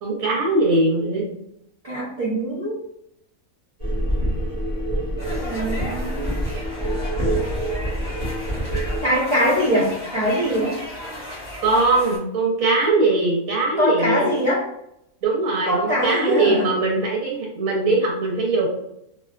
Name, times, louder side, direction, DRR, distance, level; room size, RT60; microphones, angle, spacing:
voice 1, 0.0-1.2 11.6-14.4 15.2-18.7, right 2 dB, 85° right, -2 dB, 1.1 m, -21 dB
voice 2, 1.8-2.8 5.4-6.4 9.0-10.8 13.8-14.7 15.6-16.7, equal, 55° right, -7 dB, 0.4 m, -22 dB
sound 1, 3.8-9.0, right 1 dB, 30° right, 0.9 m, -25 dB
sound 2, 5.2-12.2, left 1 dB, 35° left, 1.0 m, -35 dB
2.6 x 2.2 x 2.3 m, 0.78 s
omnidirectional pair, 1.4 m